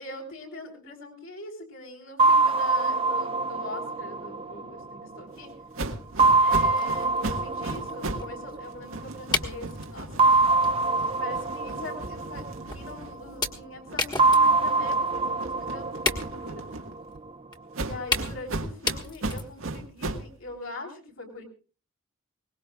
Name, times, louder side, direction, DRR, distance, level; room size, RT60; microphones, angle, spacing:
voice 1, 0.0-5.5 6.4-10.2 11.2-16.7 17.8-21.4, left 2 dB, 75° left, 2 dB, 4.6 m, -42 dB
sound 1, 2.2-5.5 6.2-9.1 10.2-13.3 14.2-17.3, right 3 dB, 30° right, 0.6 m, -24 dB
sound 2, 5.7-8.3 8.6-13.4 13.8-17.2 17.7-20.3, right 2 dB, 90° right, 1.6 m, -37 dB
sound 3, 6.6-8.5 9.3-10.0 10.6-10.8 11.2-11.3 12.0-12.1 12.7-13.0 13.4-14.7 15.1-15.2 15.4-15.6 16.0-16.6 17.5-17.6 18.1-18.5 18.9-19.6, left 3 dB, 20° left, 1.5 m, -32 dB
22.0 x 19.5 x 2.4 m, 0.36 s
head